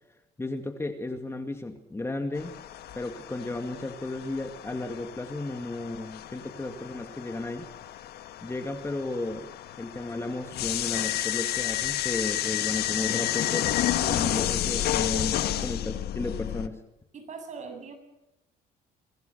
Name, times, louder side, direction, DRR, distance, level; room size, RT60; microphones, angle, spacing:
voice 1, 0.4-2.6 3.0-7.7 8.4-9.5 9.8-13.7 14.0-16.8, left 2 dB, 15° left, 6 dB, 2.2 m, -34 dB
sound 1, 2.4-16.7, left 13 dB, 70° left, 1.5 m, -31 dB
voice 2, 15.5-16.1 17.1-17.9, right 5 dB, 45° right, 6 dB, 7.6 m, -42 dB
25.5 x 20.5 x 6.8 m, 0.91 s
cardioid pair, 110°, 17 cm